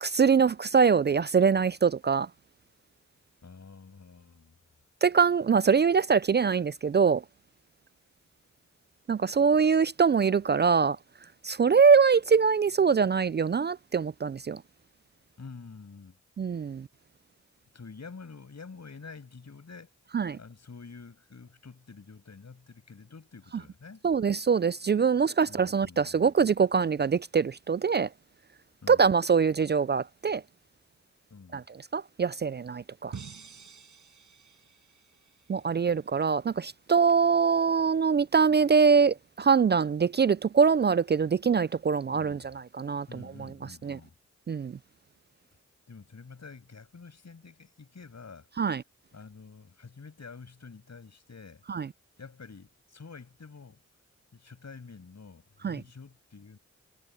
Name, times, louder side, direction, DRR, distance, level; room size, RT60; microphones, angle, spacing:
voice 1, 0.0-2.3 5.0-7.2 9.1-11.0 11.4-14.6 16.4-16.9 20.1-20.4 24.0-28.1 28.9-30.4 31.5-31.6 31.9-33.1 35.5-43.5 43.8-44.0 44.5-44.8 48.6-48.8 51.7-51.9 55.6-55.8, right 6 dB, 35° right, 0.4 m, -23 dB
voice 2, 3.4-4.6 15.4-16.2 17.7-19.9 20.3-24.0 25.5-26.3 28.8-29.1 31.3-31.6 42.1-42.6 43.1-44.1 45.9-48.5 49.1-51.6 52.2-53.8 54.3-56.6, left 4 dB, 65° left, 7.9 m, -48 dB
sound 1, 33.1-36.3, right 6 dB, 80° right, 5.9 m, -48 dB
cardioid pair, 50°, 30 cm